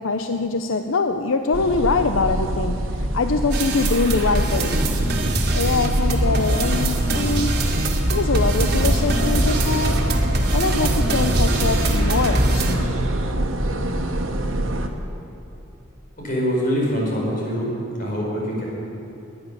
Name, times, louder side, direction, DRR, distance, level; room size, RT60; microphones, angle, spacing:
voice 1, 0.0-4.8 5.6-7.6 8.1-10.0 10.5-13.0, left 4 dB, 80° left, 7 dB, 0.6 m, -23 dB
sound 1, 1.5-14.9, right 1 dB, 85° right, 1.3 m, -25 dB
sound 2, 3.5-12.7, right 1 dB, 55° right, 1.8 m, -23 dB
voice 2, 16.2-17.7 18.0-18.6, equal, 45° left, -3 dB, 4.8 m, -24 dB
19.0 x 10.5 x 6.8 m, 2.9 s
head